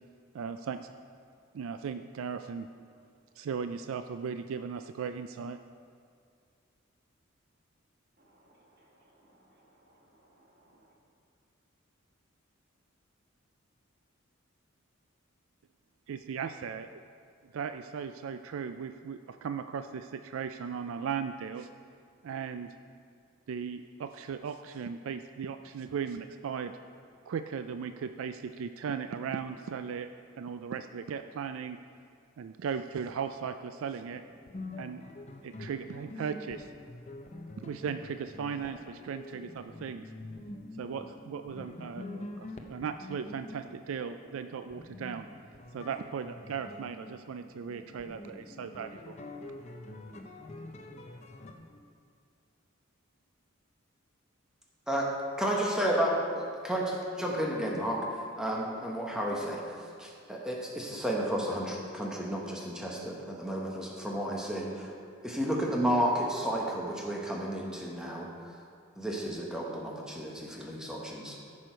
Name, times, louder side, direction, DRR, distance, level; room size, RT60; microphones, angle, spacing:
voice 1, 0.3-0.9 1.5-2.7 3.4-5.6 16.1-17.0 17.5-21.7 22.2-22.7 23.5-26.7 27.3-31.8 32.4-34.2 34.8-35.1 35.4-36.7 37.6-40.1 40.8-45.3 45.7-49.2, right 6 dB, 75° right, 9 dB, 0.3 m, -37 dB
voice 2, 8.2-10.9, right 1 dB, 50° right, -1 dB, 1.7 m, -64 dB
sound 1, 34.0-51.8, left 2 dB, 35° left, 0.7 m, -46 dB
voice 3, 55.4-56.8 57.2-64.9 65.2-68.6 69.0-71.4, equal, 5° right, -2 dB, 1.2 m, -32 dB
15.0 x 6.3 x 4.5 m, 2.3 s
head